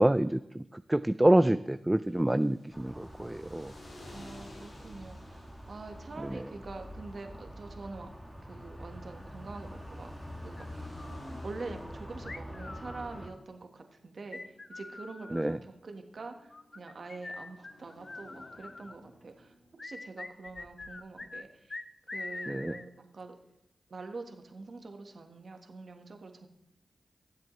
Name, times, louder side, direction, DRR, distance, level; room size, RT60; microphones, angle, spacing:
voice 1, 0.0-3.7 6.3-6.4 15.3-15.6 22.5-22.7, right 1 dB, 20° right, 13 dB, 0.4 m, -27 dB
sound 1, 1.9-19.8, left 1 dB, 70° left, 2.7 m, -56 dB
sound 2, 2.7-13.3, equal, 5° left, 1.4 m, -45 dB
voice 2, 4.1-8.1 8.4-10.1 10.4-10.9 11.4-19.5 19.8-21.8 22.1-23.3 23.9-26.5, right 3 dB, 70° right, 4 dB, 1.4 m, -45 dB
sound 3, 10.6-11.3 12.2-13.4 14.3-15.6 16.5-19.0 19.8-21.4 21.7-22.8, left 3 dB, 50° left, 0.6 m, -44 dB
17.5 x 7.5 x 3.2 m, 0.84 s
cardioid pair, 40°, 0 cm